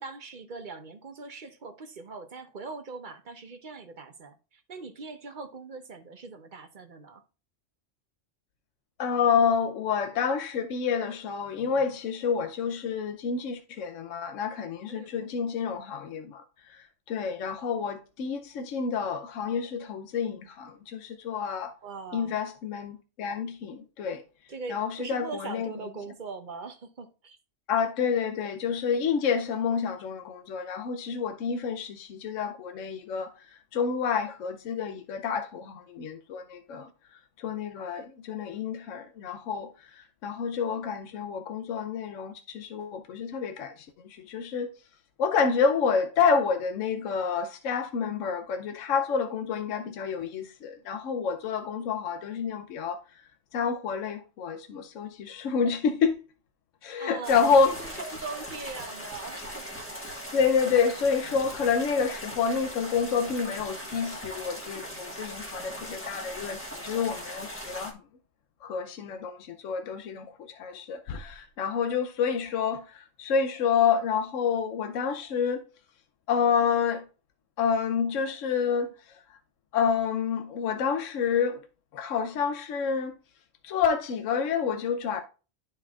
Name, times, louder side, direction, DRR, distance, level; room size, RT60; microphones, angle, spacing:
voice 1, 0.0-7.2 14.9-15.1 21.8-22.4 24.5-27.4 57.0-59.6, right 4 dB, 45° right, 0.9 m, -41 dB
voice 2, 9.0-21.7 22.1-24.2 24.7-25.7 27.7-33.5 33.7-36.9 37.4-44.7 45.2-53.0 53.5-56.2 56.8-57.8 60.3-67.9 68.6-75.7 76.3-77.0 77.6-79.2 79.7-81.6 81.9-83.1 83.6-85.2, left 6 dB, 85° left, 1.0 m, -28 dB
sound 1, 57.2-67.9, equal, 10° left, 1.4 m, -39 dB
12.0 x 4.4 x 2.4 m
omnidirectional pair, 1.3 m